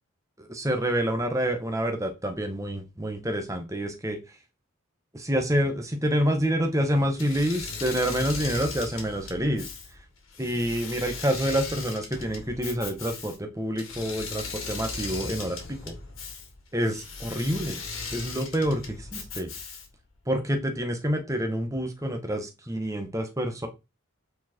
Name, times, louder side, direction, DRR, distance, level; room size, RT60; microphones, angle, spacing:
voice 1, 0.4-4.2 5.1-9.7 10.4-15.8 16.7-17.8 18.1-19.5 20.3-23.7, equal, 15° right, 5 dB, 1.4 m, -27 dB
Engine / Mechanisms, 7.2-20.1, left 4 dB, 75° left, 2.5 m, -38 dB
9.2 x 4.7 x 4.5 m, 0.25 s
head